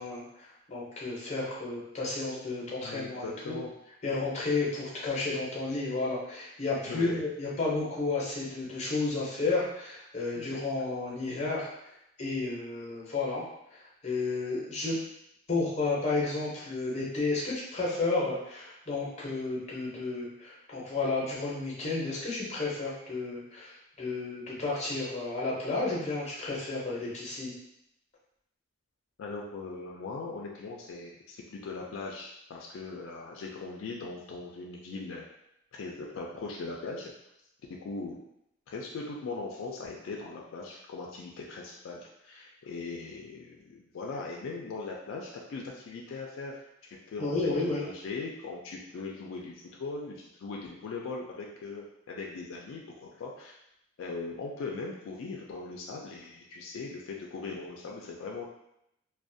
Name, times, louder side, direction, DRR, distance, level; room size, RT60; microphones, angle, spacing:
voice 1, 0.0-3.6 4.0-11.7 12.2-13.4 14.0-14.9 15.5-27.5 47.2-47.8, left 3 dB, 30° left, -5 dB, 0.6 m, -32 dB
voice 2, 2.8-3.7 4.0-4.1 6.9-7.2 10.3-10.6 29.2-35.3 35.7-37.1 37.8-38.2 38.7-46.6 46.8-53.6 54.0-58.5, left 3 dB, 75° left, -1 dB, 0.3 m, -40 dB
2.4 x 2.1 x 2.6 m, 0.80 s
head